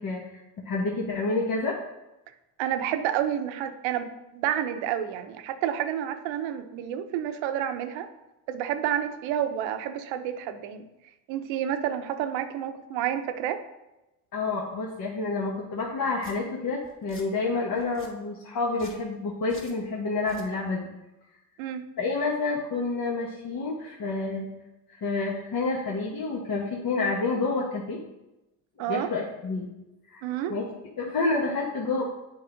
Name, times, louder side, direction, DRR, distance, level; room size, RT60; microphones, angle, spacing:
voice 1, 0.0-1.8 14.3-20.9 22.0-24.5 25.0-28.0 28.9-29.7 30.1-30.2 30.5-30.6 31.0-32.0, left 3 dB, 45° left, -2 dB, 1.3 m, -29 dB
voice 2, 2.6-4.1 4.3-8.1 8.5-10.8 11.3-13.6 21.6-21.9 28.8-29.1 30.2-30.5, right 10 dB, 75° right, 9 dB, 0.8 m, -29 dB
Domestic sounds home sounds, 15.8-15.9 16.2-16.3 16.8-17.3 17.8-18.1 18.7-19.0 19.5-19.8 20.2-20.5, left 2 dB, 25° left, 2.1 m, -48 dB
7.8 x 4.7 x 3.9 m, 0.97 s
supercardioid pair, 80°, 46 cm